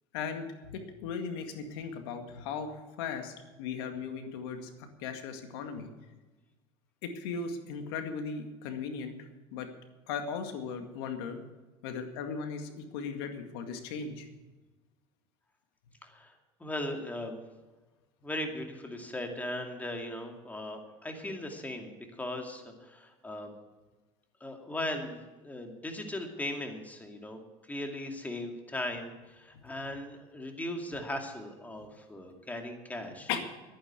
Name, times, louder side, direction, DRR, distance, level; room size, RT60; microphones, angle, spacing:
voice 1, 0.1-5.9 7.0-9.2 9.5-9.7 10.1-11.4 11.8-14.3 29.5-29.6 33.3-33.4, left 6 dB, 85° left, 6 dB, 2.0 m, -37 dB
voice 2, 16.0-17.4 18.2-23.5 24.4-27.4 27.7-33.3, left 1 dB, 10° left, 4 dB, 2.4 m, -38 dB
11.0 x 9.7 x 8.2 m, 1.2 s
supercardioid pair, 105°, 13 cm